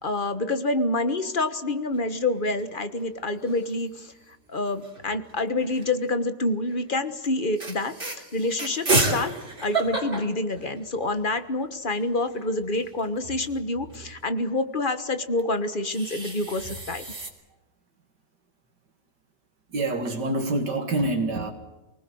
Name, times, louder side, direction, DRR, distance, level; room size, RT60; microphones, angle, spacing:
voice 1, 0.0-4.1 4.5-9.3 9.6-17.1, left 2 dB, 30° left, 10 dB, 1.5 m, -27 dB
sound 1, 1.9-2.6 3.0-3.1 3.3-3.9 4.8-6.0 6.6-6.9 7.2-7.3 7.6-11.2 11.6-11.7 11.8-14.1 15.4-17.3, right 2 dB, 30° right, 3.6 m, -31 dB
voice 2, 19.7-21.5, right 2 dB, 75° right, 3 dB, 2.6 m, -26 dB
24.5 x 19.5 x 7.8 m, 1.0 s
omnidirectional pair, 1.8 m